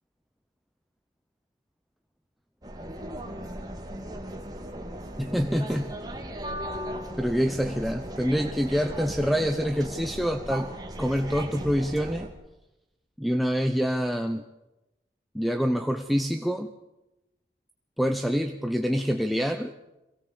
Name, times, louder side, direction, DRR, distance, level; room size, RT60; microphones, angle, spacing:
sound 1, 2.6-12.3, right 1 dB, 20° right, 2.5 m, -37 dB
voice 1, 5.2-5.9 7.2-10.7 11.0-12.3 13.2-14.4 15.3-16.7 18.0-19.7, equal, ahead, 4 dB, 0.8 m, -26 dB
23.0 x 17.0 x 8.1 m, 0.95 s
head